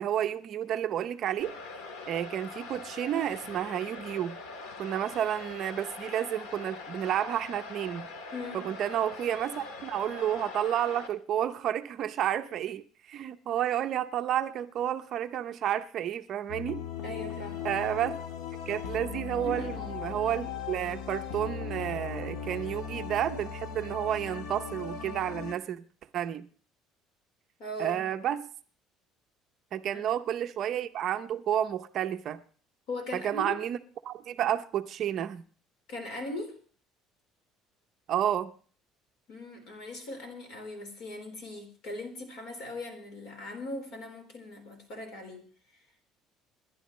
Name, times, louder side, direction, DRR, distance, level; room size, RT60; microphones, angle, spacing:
voice 1, 0.0-1.5 2.1-4.4 4.8-8.1 8.5-16.8 17.6-18.2 18.7-25.8 26.1-26.5 27.8-28.5 29.7-32.4 33.1-33.8 34.0-35.4 38.1-38.5, right 10 dB, 40° right, 0.6 m, -31 dB
sound 1, 1.4-11.1, left 3 dB, 85° left, 2.0 m, -43 dB
voice 2, 8.3-8.7 17.0-17.6 19.4-19.9 27.6-28.1 29.9-30.1 32.9-33.6 35.9-36.5 39.3-45.5, left 1 dB, 55° left, 4.1 m, -39 dB
sound 2, 16.5-25.5, left 7 dB, 70° left, 1.4 m, -38 dB
27.5 x 11.0 x 3.1 m
cardioid pair, 175°, 0 cm